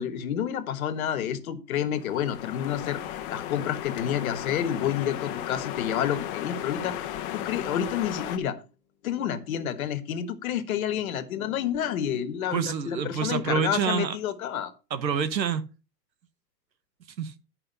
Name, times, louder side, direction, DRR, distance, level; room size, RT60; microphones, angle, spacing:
voice 1, 0.0-3.0 3.3-8.6 9.0-14.7, left 9 dB, 55° left, 1.6 m, -29 dB
sound 1, 1.9-8.4, left 12 dB, 30° left, 1.1 m, -35 dB
voice 2, 12.5-14.2 14.9-15.6 17.2-17.4, right 7 dB, 90° right, 1.4 m, -27 dB
11.0 x 5.5 x 5.4 m
hypercardioid pair, 145°, 50 cm